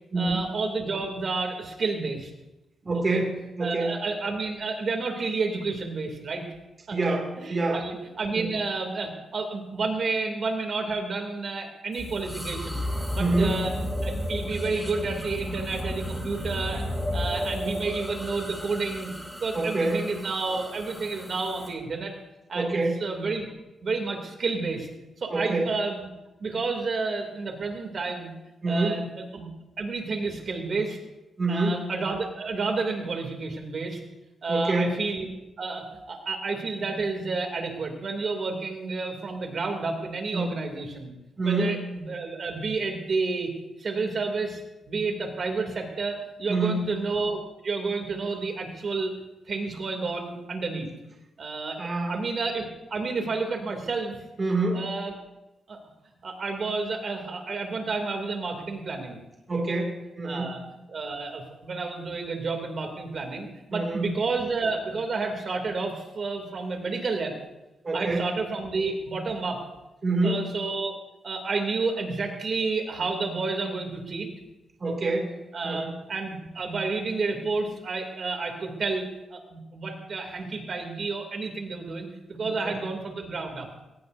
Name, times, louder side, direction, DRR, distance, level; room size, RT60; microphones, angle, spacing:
voice 1, 0.2-2.3 3.1-3.2 3.6-6.4 6.9-12.8 13.1-13.7 14.0-16.9 17.1-19.1 19.4-22.1 22.5-23.5 23.8-24.9 25.2-26.0 26.4-28.3 28.7-29.1 29.3-29.5 29.8-31.0 31.5-34.0 34.4-35.3 35.6-41.1 41.4-43.5 43.8-44.6 44.9-49.1 49.5-50.9 51.4-51.8 52.1-54.2 54.7-55.1 55.7-55.8 56.2-59.2 59.5-59.8 60.2-60.6 60.9-67.3 67.9-69.6 70.2-70.9 71.2-74.3 74.8-75.1 75.5-83.7, right 4 dB, 45° right, 3 dB, 2.7 m, -30 dB
voice 2, 2.8-4.0 6.9-7.8 8.3-8.5 13.2-13.6 19.5-20.1 22.5-23.1 25.3-25.7 28.6-29.0 31.4-31.8 34.5-35.0 40.3-40.6 41.4-41.8 46.5-46.9 51.8-52.2 54.4-54.9 59.5-60.6 63.7-64.2 67.8-68.3 70.0-70.4 74.8-75.3 75.6-75.9 82.4-82.7, right 2 dB, 30° right, 0 dB, 2.4 m, -26 dB
sound 1, 11.9-21.7, left 1 dB, ahead, 2.8 m, -33 dB
22.5 x 18.5 x 2.7 m, 0.98 s
wide cardioid pair, 145°, 0 cm